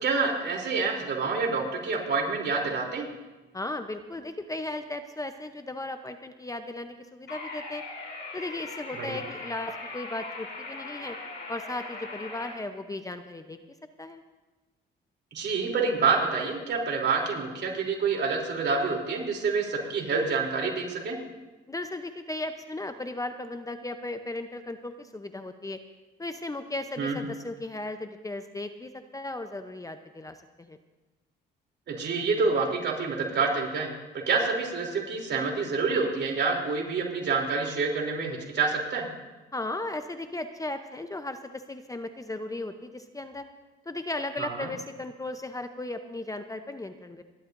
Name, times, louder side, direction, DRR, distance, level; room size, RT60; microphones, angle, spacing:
voice 1, 0.0-3.1 9.0-9.2 15.3-21.2 27.0-27.2 31.9-33.9 34.1-39.1 44.4-44.7, right 4 dB, 60° right, 0 dB, 3.3 m, -27 dB
voice 2, 3.5-7.8 8.3-11.2 11.5-13.6 14.0-14.2 21.7-25.8 26.2-30.8 39.5-43.5 43.9-47.2, left 2 dB, 15° left, 8 dB, 0.8 m, -36 dB
sound 1, 7.3-12.5, left 3 dB, 65° left, 3.7 m, -40 dB
29.0 x 12.0 x 2.6 m, 1.2 s
cardioid pair, 90°, 20 cm